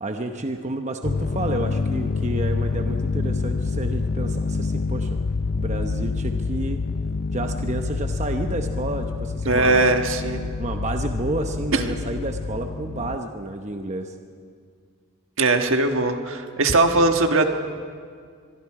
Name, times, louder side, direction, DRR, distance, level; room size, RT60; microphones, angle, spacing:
voice 1, 0.0-5.2 5.5-6.8 7.3-9.8 10.4-14.2, right 2 dB, 35° right, 5 dB, 0.9 m, -30 dB
sound 1, 1.0-13.2, left 4 dB, 45° left, 0.5 m, -27 dB
voice 2, 9.5-10.4 11.7-12.0 15.4-17.4, right 2 dB, 65° right, 5 dB, 1.5 m, -20 dB
24.5 x 23.5 x 4.9 m, 2.1 s
head